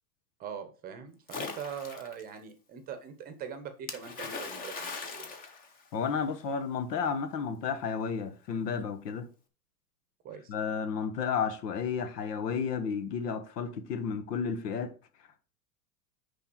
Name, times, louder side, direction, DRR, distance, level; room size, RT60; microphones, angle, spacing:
voice 1, 0.4-5.3 10.2-10.5, right 7 dB, 20° right, 0.8 m, -42 dB
Splash splatter, 1.3-2.2 3.9-6.3, left 4 dB, 20° left, 0.9 m, -40 dB
voice 2, 5.9-9.3 10.5-14.9, left 6 dB, 80° left, 1.6 m, -32 dB
9.7 x 3.5 x 6.1 m
supercardioid pair, 160°, 48 cm